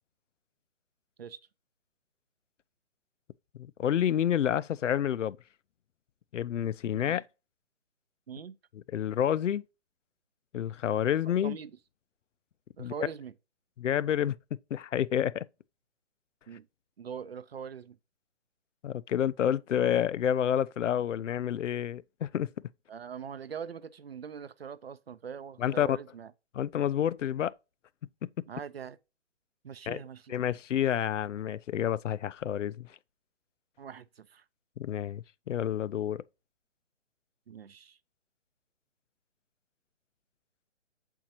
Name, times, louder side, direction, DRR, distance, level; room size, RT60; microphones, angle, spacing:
voice 1, 3.6-5.4 6.3-7.2 8.9-9.6 10.5-11.6 12.8-12.9 13.8-14.4 14.7-15.5 18.8-22.5 25.6-26.0 26.5-27.5 28.2-28.3 29.9-30.0 30.3-32.9 34.8-36.2, left 10 dB, 85° left, 0.5 m, -29 dB
voice 2, 8.3-8.6 11.4-11.8 12.8-13.3 16.5-16.7 17.0-18.0 22.9-26.3 28.5-29.0 29.6-30.4 33.8-34.4 37.5-38.0, right 7 dB, 55° right, 0.6 m, -42 dB
7.6 x 4.5 x 2.8 m
hypercardioid pair, 175°, 36 cm